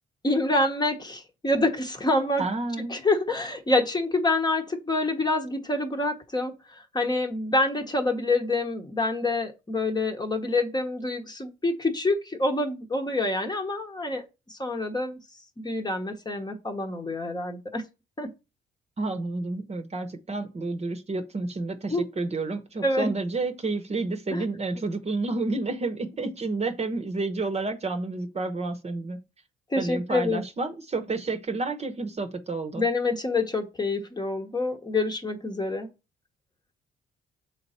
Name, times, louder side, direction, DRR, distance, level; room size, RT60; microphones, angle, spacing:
voice 1, 0.2-2.4 2.9-15.2 15.6-17.8 18.2-18.3 21.9-22.0 22.8-23.1 24.3-24.4 29.7-30.4 32.8-35.9, left 2 dB, 20° left, 1.1 m, -27 dB
voice 2, 2.4-3.0 19.0-29.2 29.8-32.8, right 3 dB, 30° right, 1.0 m, -30 dB
6.9 x 3.9 x 4.3 m
cardioid pair, 90°, 20 cm